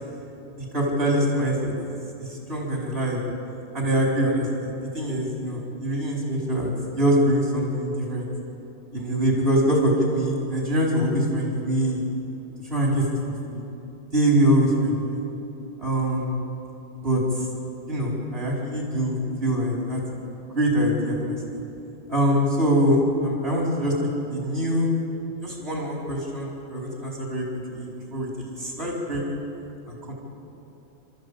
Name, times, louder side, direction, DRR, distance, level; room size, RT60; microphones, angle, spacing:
voice 1, 0.5-3.2 3.7-8.3 8.9-12.1 12.7-13.0 13.5-13.6 14.1-15.2 15.8-16.4 17.0-17.2 17.9-20.0 20.5-21.6 22.1-23.9 24.3-24.9 25.4-27.4 27.7-28.3 28.6-29.2 29.9-30.1, equal, 75° right, -3 dB, 4.8 m, -24 dB
29.5 x 13.5 x 8.8 m, 3.0 s
omnidirectional pair, 1.1 m